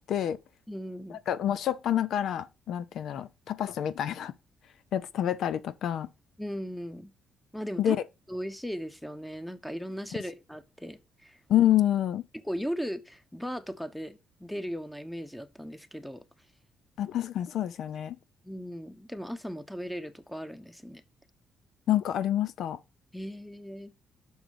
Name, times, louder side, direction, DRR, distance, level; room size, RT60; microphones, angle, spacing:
voice 1, 0.1-0.4 1.1-4.3 4.9-6.1 7.8-8.0 11.5-12.2 17.0-18.2 21.9-22.8, left 11 dB, 75° left, 0.5 m, -27 dB
voice 2, 0.7-1.2 6.4-7.1 7.5-8.0 8.3-11.4 12.3-16.2 18.4-21.0 23.1-23.9, equal, 5° left, 1.1 m, -37 dB
6.4 x 5.0 x 6.6 m
cardioid pair, 90°, 0 cm